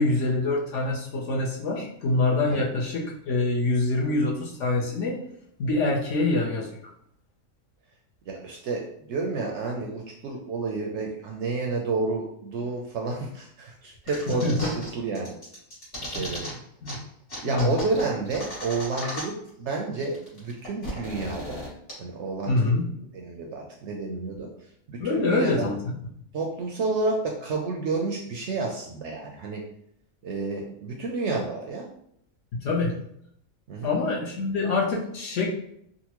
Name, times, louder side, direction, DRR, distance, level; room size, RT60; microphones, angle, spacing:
voice 1, 0.0-5.2 5.6-6.7 14.1-14.7 16.2-16.5 16.8-17.0 17.4-17.7 22.5-22.9 25.0-26.0 32.5-33.0 33.8-35.5, left 2 dB, 65° left, -2 dB, 0.9 m, -25 dB
voice 2, 8.3-15.4 16.0-16.5 17.4-21.6 22.0-22.7 23.1-24.5 24.9-25.7 26.3-29.6 30.2-31.9 33.7-34.0, right 3 dB, 65° right, 0 dB, 0.7 m, -30 dB
sound 1, 14.1-14.9 15.1-16.5 16.8-16.9 17.3-19.5 19.8-19.9 20.0-21.9, equal, 45° left, 1.5 m, -36 dB
3.8 x 2.1 x 2.9 m, 0.70 s
omnidirectional pair, 1.5 m